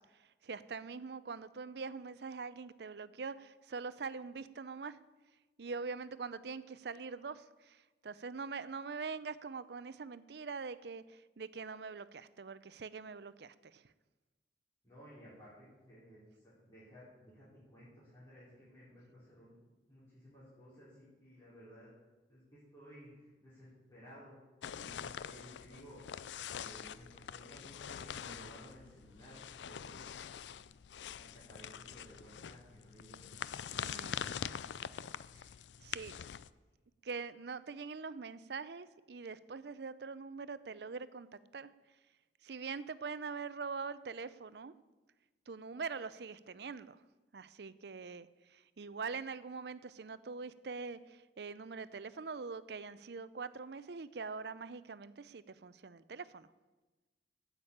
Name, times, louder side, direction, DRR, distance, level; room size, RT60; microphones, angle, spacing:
voice 1, 0.4-5.0 5.6-7.8 8.0-13.8 33.7-34.2 35.8-36.3 37.0-41.3 41.5-41.7 42.4-44.7 45.5-47.0 47.3-48.3 48.5-56.5, right 4 dB, 65° right, 16 dB, 0.5 m, -43 dB
voice 2, 14.8-19.6 19.9-21.9 22.3-24.4 24.7-26.2 26.5-30.1 31.2-33.9, equal, 25° left, -11 dB, 4.9 m, -56 dB
sound 1, 24.6-36.5, left 8 dB, 85° left, 0.4 m, -44 dB
9.6 x 8.2 x 8.7 m, 1.2 s
head